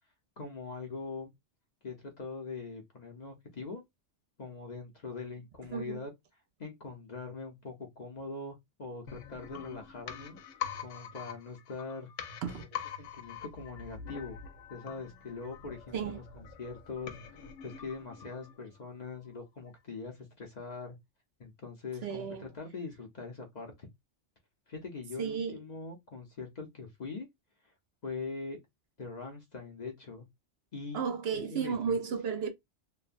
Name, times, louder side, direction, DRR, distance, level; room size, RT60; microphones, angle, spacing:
voice 1, 0.4-1.3 1.8-3.8 4.4-6.1 6.6-10.4 10.8-12.1 12.6-12.7 13.0-14.4 14.7-21.0 21.4-23.9 24.7-27.3 28.0-28.6 29.0-30.3 30.7-31.0 31.3-31.9, left 4 dB, 45° left, 0.6 m, -42 dB
voice 2, 5.7-6.0 12.4-12.6 15.9-16.2 22.0-22.5 25.2-25.6 30.9-32.5, right 6 dB, 65° right, 0.8 m, -33 dB
sound 1, 9.1-18.8 19.1-19.2, left 8 dB, 80° left, 0.9 m, -44 dB
3.1 x 2.1 x 2.5 m
omnidirectional pair, 1.2 m